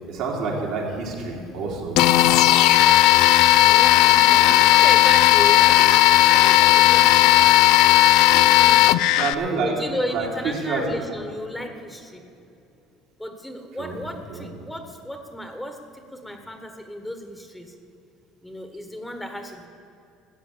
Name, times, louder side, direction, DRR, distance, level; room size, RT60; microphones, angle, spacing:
voice 1, 0.1-2.0 9.1-9.7 10.1-10.3 10.7-10.8 13.8-14.0 14.3-14.5, right 4 dB, 70° right, -2 dB, 3.5 m, -28 dB
sound 1, 2.0-9.3, left 15 dB, 70° left, 0.5 m, -15 dB
voice 2, 3.6-7.6 8.3-9.0 9.6-12.2 13.2-17.7 18.4-19.7, left 1 dB, 5° left, 6 dB, 1.3 m, -34 dB
13.5 x 7.8 x 8.5 m, 2.8 s
supercardioid pair, 100°, 0 cm